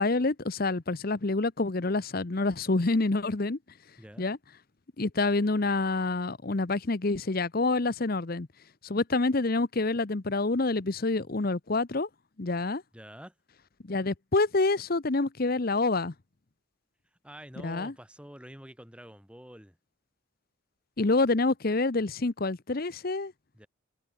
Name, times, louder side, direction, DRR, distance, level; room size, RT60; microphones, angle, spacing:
voice 1, 0.0-3.6 4.2-4.4 5.0-8.5 8.8-12.1 12.4-12.8 13.9-16.1 17.6-17.9 21.0-23.3, left 3 dB, 45° left, 0.8 m, -27 dB
voice 2, 4.0-4.3 12.9-13.3 17.2-19.8 23.5-23.7, equal, 5° right, 4.9 m, -47 dB
head